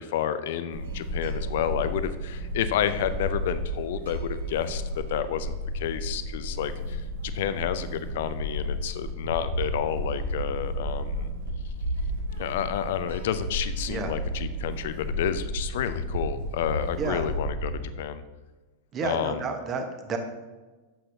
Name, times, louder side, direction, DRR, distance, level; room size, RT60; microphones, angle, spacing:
voice 1, 0.0-11.3 12.4-17.7 18.0-18.2 19.0-19.5, left 10 dB, 55° left, 12 dB, 0.5 m, -30 dB
sound 1, 0.7-18.0, equal, 65° right, 1.6 m, -32 dB
voice 2, 18.9-20.2, right 4 dB, 30° right, 5 dB, 1.1 m, -31 dB
10.0 x 7.8 x 2.7 m, 1.2 s
figure-of-eight pair, 90°, 0 cm